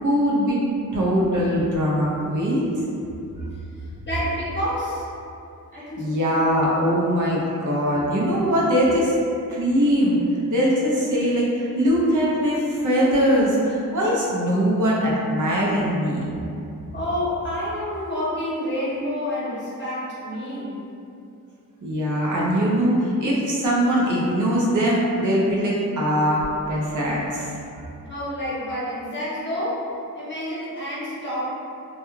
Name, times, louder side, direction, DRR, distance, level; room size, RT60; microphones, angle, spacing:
voice 1, 0.0-0.6 0.9-2.8 5.7-9.2 9.5-10.2 10.5-16.2 21.8-27.8, equal, 60° right, -5 dB, 0.6 m, -21 dB
voice 2, 3.8-5.1 5.7-6.1 16.9-20.8 28.0-29.8 30.1-31.4, left 1 dB, 30° left, -9 dB, 0.8 m, -28 dB
2.3 x 2.2 x 3.0 m, 2.6 s
wide cardioid pair, 160°, 35 cm